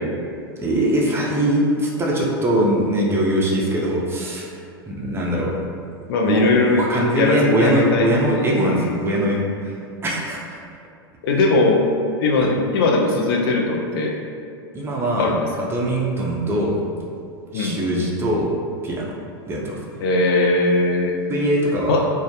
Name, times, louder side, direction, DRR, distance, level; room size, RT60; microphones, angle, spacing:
voice 1, 0.6-4.6 4.9-5.6 6.2-6.5 6.8-9.8 10.0-10.6 12.4-12.5 14.7-15.3 15.7-16.8 17.5-18.5 18.8-19.1 19.5-19.8 21.3-22.0, right 1 dB, 20° right, -3 dB, 0.4 m, -21 dB
voice 2, 6.1-6.9 7.1-8.9 11.2-11.8 12.2-14.2 15.2-15.5 17.5-17.8 20.0-21.1 21.9-22.1, left 2 dB, 65° left, 1 dB, 0.4 m, -19 dB
2.2 x 2.0 x 2.8 m, 2.3 s
hypercardioid pair, 105°, 13 cm